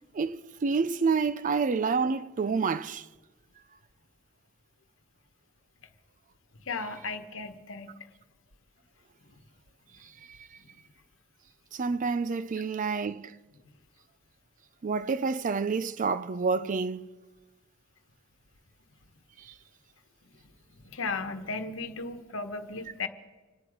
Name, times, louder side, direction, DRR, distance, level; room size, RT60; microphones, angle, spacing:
voice 1, 0.1-3.0 11.7-13.4 14.8-17.1, right 4 dB, 40° right, 0.4 m, -28 dB
voice 2, 6.6-7.9 11.9-12.0 20.8-23.1, left 4 dB, 65° left, 1.2 m, -35 dB
27.0 x 9.7 x 4.9 m
head